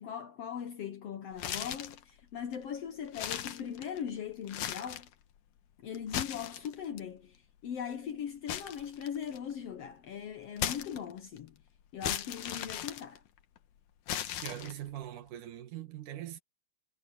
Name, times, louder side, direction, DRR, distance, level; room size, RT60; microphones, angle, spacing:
voice 1, 0.0-5.1 5.8-11.6 11.9-13.2, left 8 dB, 60° left, 1.9 m, -40 dB
sound 1, 1.3-2.0 2.5-2.6 3.1-4.1 4.4-5.1 5.9-7.0 8.5-9.5 10.6-11.4 12.0-13.6 14.1-15.0, left 10 dB, 80° left, 2.8 m, -37 dB
voice 2, 14.4-16.4, right 12 dB, 90° right, 3.1 m, -42 dB
omnidirectional pair, 3.5 m